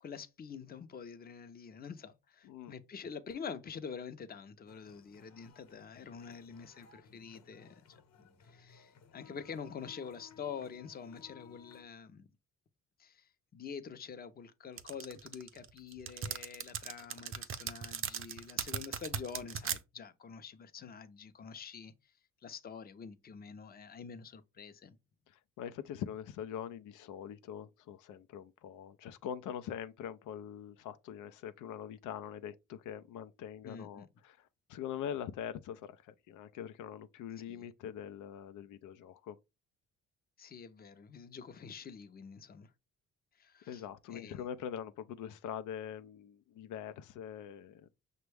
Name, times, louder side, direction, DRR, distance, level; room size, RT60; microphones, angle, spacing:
voice 1, 0.0-12.3 13.0-21.9 22.4-25.0 33.6-34.1 37.5-37.7 40.4-42.7 43.4-43.8 44.1-44.4, left 6 dB, 30° left, 0.6 m, -47 dB
sound 1, 4.7-11.8, left 6 dB, 60° left, 0.9 m, -59 dB
sound 2, 14.8-19.8, right 8 dB, 45° right, 0.6 m, -38 dB
voice 2, 25.3-39.4 43.7-47.9, left 9 dB, 80° left, 0.5 m, -43 dB
6.0 x 2.2 x 3.2 m
cardioid pair, 90°, 30 cm